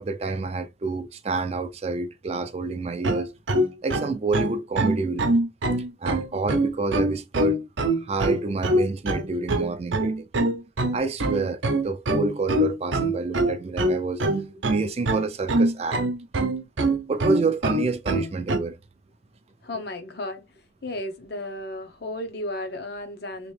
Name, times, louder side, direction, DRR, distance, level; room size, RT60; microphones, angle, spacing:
voice 1, 0.0-3.3 3.8-5.3 6.0-7.6 8.0-10.3 10.9-16.0 17.1-18.8, right 3 dB, 30° right, 0.4 m, -28 dB
sound 1, 3.0-18.6, right 1 dB, 75° right, 0.7 m, -24 dB
voice 2, 19.6-20.5 20.8-23.5, left 1 dB, 55° left, 0.7 m, -34 dB
3.5 x 2.9 x 3.2 m
head